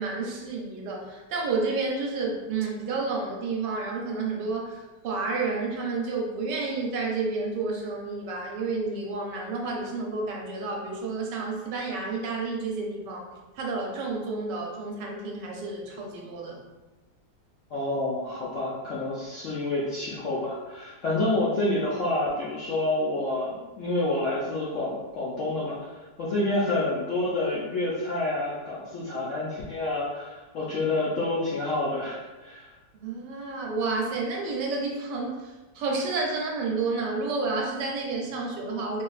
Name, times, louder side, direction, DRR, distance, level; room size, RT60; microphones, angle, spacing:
voice 1, 0.0-13.3 13.6-16.6 32.9-39.0, right 3 dB, 85° right, -1 dB, 1.2 m, -30 dB
voice 2, 17.7-25.8 26.2-32.2 32.4-32.7, left 2 dB, 65° left, -7 dB, 0.7 m, -28 dB
3.1 x 3.0 x 2.3 m, 1.2 s
omnidirectional pair, 1.9 m